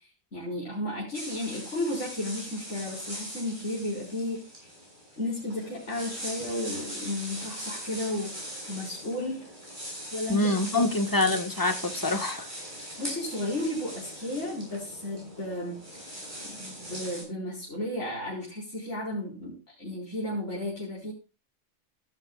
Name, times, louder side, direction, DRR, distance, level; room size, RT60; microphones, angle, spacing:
voice 1, 0.3-4.4 5.2-9.5 10.1-10.8 13.0-15.8 16.6-21.1, left 1 dB, 70° left, -7 dB, 5.1 m, -33 dB
sound 1, 1.1-17.2, equal, 40° right, 8.4 m, -40 dB
voice 2, 10.3-12.5, left 2 dB, 15° left, 7 dB, 1.5 m, -26 dB
15.0 x 12.0 x 2.4 m, 0.30 s
omnidirectional pair, 1.3 m